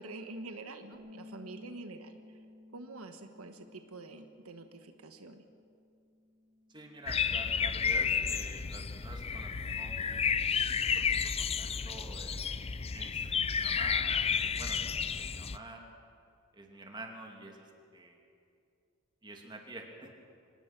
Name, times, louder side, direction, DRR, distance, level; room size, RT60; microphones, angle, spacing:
voice 1, 0.0-2.4 2.7-5.4, right 2 dB, 85° right, 7 dB, 1.3 m, -46 dB
Bass guitar, 0.9-7.2, left 2 dB, 60° right, 6.6 m, -56 dB
voice 2, 6.7-10.6 10.8-12.5 12.9-15.8 16.5-17.6 17.9-18.2 19.2-20.1, right 2 dB, 20° right, 1 dB, 2.7 m, -48 dB
sound 1, 7.1-15.6, left 6 dB, 30° left, 0.5 m, -31 dB
25.0 x 19.0 x 6.1 m, 2.5 s
head